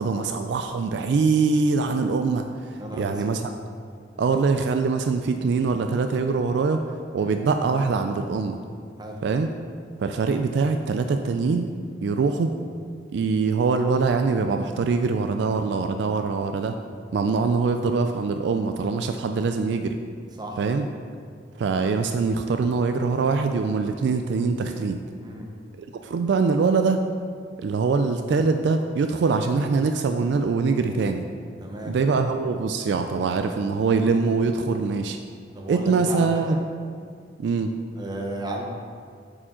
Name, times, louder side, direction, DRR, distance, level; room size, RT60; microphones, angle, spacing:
voice 1, 0.0-3.4 4.2-6.8 7.1-8.6 9.2-9.5 10.0-11.7 12.0-12.5 13.1-16.8 17.1-20.0 20.6-20.9 21.6-25.0 25.8-27.1 27.6-31.3 31.8-35.2 35.7-36.6 37.4-37.7, right 4 dB, 65° right, 7 dB, 0.3 m, -23 dB
voice 2, 2.8-3.4 7.2-7.3 9.0-9.2 20.4-20.6 25.2-25.5 31.6-31.9 34.7-34.8 35.5-36.6 38.0-38.6, right 1 dB, 20° right, 1 dB, 0.8 m, -34 dB
8.1 x 5.0 x 3.7 m, 2.1 s
head